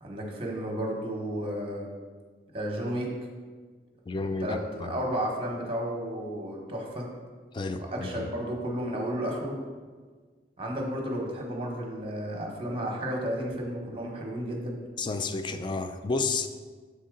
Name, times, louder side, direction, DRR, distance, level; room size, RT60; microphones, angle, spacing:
voice 1, 0.0-1.9 2.5-3.1 4.4-7.1 7.8-9.5 10.6-14.8, equal, 30° right, 0 dB, 1.0 m, -32 dB
voice 2, 4.1-4.9 7.5-7.8 8.1-8.3 15.0-16.5, left 3 dB, 25° left, 8 dB, 0.3 m, -31 dB
6.6 x 4.1 x 3.7 m, 1.5 s
head